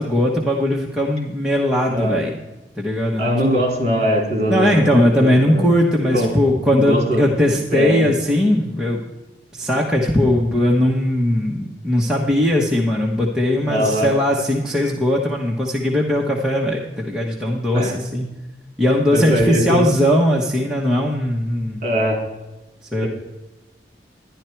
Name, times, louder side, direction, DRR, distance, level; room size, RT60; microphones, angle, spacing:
voice 1, 0.0-2.4 2.8-3.6 4.5-9.0 9.5-18.2 18.8-21.8 22.9-23.1, left 1 dB, 5° right, -3 dB, 1.1 m, -19 dB
voice 2, 3.2-5.7 6.1-6.3 6.8-7.2 7.7-8.1 13.7-14.1 17.7-17.9 19.1-19.9 21.8-22.2 23.0-23.1, equal, 40° right, 1 dB, 3.5 m, -21 dB
11.5 x 10.5 x 4.5 m, 1.0 s
head